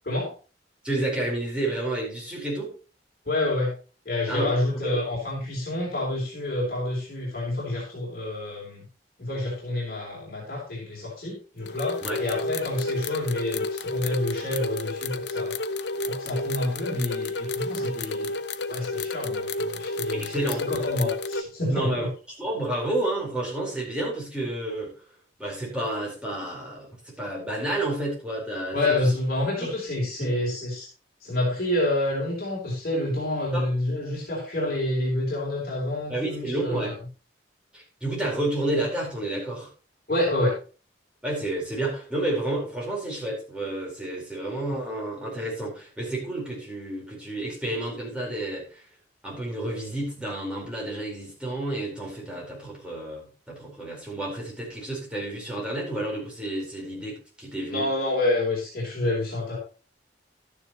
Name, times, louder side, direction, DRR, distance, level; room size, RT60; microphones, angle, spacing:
voice 1, 0.8-2.7 4.3-5.0 12.0-12.2 20.1-20.7 21.7-22.1 22.4-24.9 25.4-29.1 29.6-29.7 30.2-30.3 33.5-33.7 36.1-37.0 37.7-39.7 41.2-48.8 49.2-57.9, right 1 dB, 5° right, -4 dB, 4.5 m, -30 dB
voice 2, 3.3-3.8 4.1-8.8 9.2-15.6 16.1-18.4 18.7-22.1 28.7-30.9 31.2-36.9 40.1-40.6 57.7-59.6, left 1 dB, 55° left, -3 dB, 3.7 m, -28 dB
sound 1, 11.6-21.4, left 2 dB, 70° left, 0.7 m, -31 dB
12.0 x 9.9 x 3.1 m, 0.36 s
head